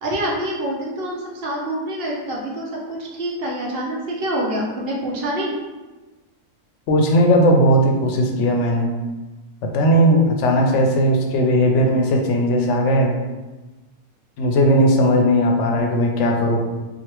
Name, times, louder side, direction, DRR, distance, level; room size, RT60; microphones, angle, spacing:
voice 1, 0.0-5.5, right 1 dB, 55° right, -3 dB, 0.8 m, -26 dB
voice 2, 6.9-8.9 9.6-13.1 14.4-16.6, equal, 65° left, 2 dB, 0.8 m, -17 dB
3.1 x 2.5 x 2.9 m, 1.2 s
omnidirectional pair, 1.4 m